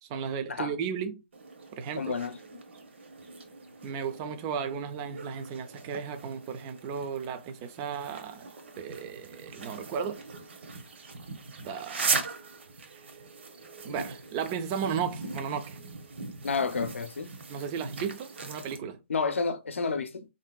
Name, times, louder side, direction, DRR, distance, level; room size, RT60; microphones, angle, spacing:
voice 1, 0.0-1.2 1.7-2.1 3.8-8.5 8.8-10.2 11.6-12.1 12.9-13.0 13.8-15.8 17.5-19.0, right 7 dB, 20° right, 0.3 m, -35 dB
sound 1, 1.3-18.8, right 4 dB, 65° right, 0.7 m, -39 dB
voice 2, 2.0-2.4 16.4-17.3 19.1-20.3, left 5 dB, 90° left, 0.5 m, -30 dB
3.5 x 2.6 x 2.2 m
hypercardioid pair, 160°, 7 cm